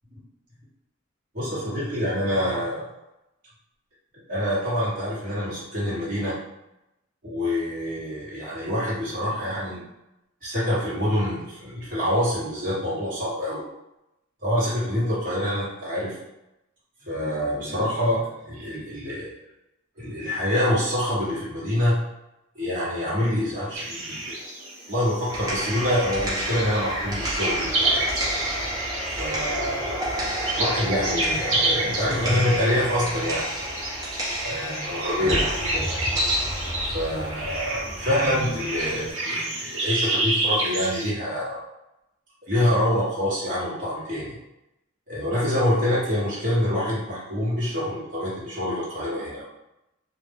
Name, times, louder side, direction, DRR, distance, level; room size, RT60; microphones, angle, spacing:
voice 1, 1.3-2.8 4.3-6.4 7.2-9.8 10.4-13.6 14.4-16.1 17.1-19.3 20.0-22.0 22.5-24.2 24.9-28.1 29.2-30.1 30.5-33.5 34.4-36.0 36.9-41.6 42.5-44.4 45.1-49.5, left 1 dB, 40° right, -10 dB, 1.2 m, -26 dB
sound 1, 23.8-41.1, right 2 dB, 65° right, 0.8 m, -29 dB
sound 2, 25.1-39.1, equal, 20° right, 0.8 m, -31 dB
2.4 x 2.1 x 3.5 m, 0.90 s
head